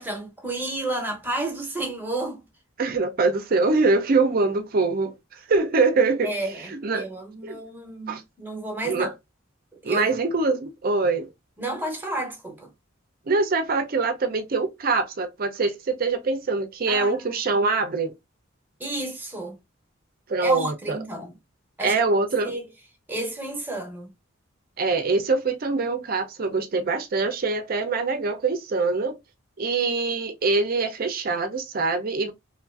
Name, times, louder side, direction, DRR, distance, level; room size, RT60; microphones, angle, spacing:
voice 1, 0.0-2.4 6.2-9.1 9.8-10.1 11.6-12.7 16.9-17.3 17.6-17.7 18.8-19.6 20.4-21.3 21.8-22.0 22.4-22.6 23.1-24.1, right 2 dB, 10° right, 0.8 m, -31 dB
voice 2, 2.8-5.1 5.5-6.3 6.7-7.1 7.4-7.6 8.1-8.2 8.8-9.1 9.8-11.3 13.3-18.1 20.3-21.0 21.8-22.5 24.8-29.2 29.6-32.3, right 3 dB, 45° right, 0.5 m, -24 dB
3.1 x 2.4 x 2.4 m
head